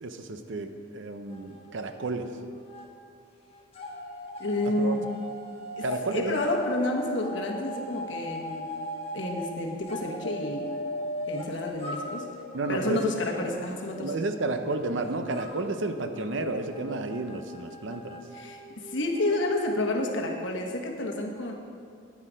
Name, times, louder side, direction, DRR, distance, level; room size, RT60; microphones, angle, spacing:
voice 1, 0.0-2.3 4.8-4.9 5.8-6.4 12.5-13.1 14.0-18.2, right 2 dB, 65° right, 8 dB, 0.7 m, -31 dB
sound 1, 1.3-2.9 3.2-20.3, left 1 dB, 30° left, 1.3 m, -39 dB
voice 2, 4.4-5.0 5.8-5.9 6.1-8.7 9.1-10.7 11.3-12.3 12.7-14.1 18.3-21.5, left 1 dB, 65° left, 1 dB, 1.3 m, -30 dB
9.8 x 9.5 x 5.1 m, 2.2 s
head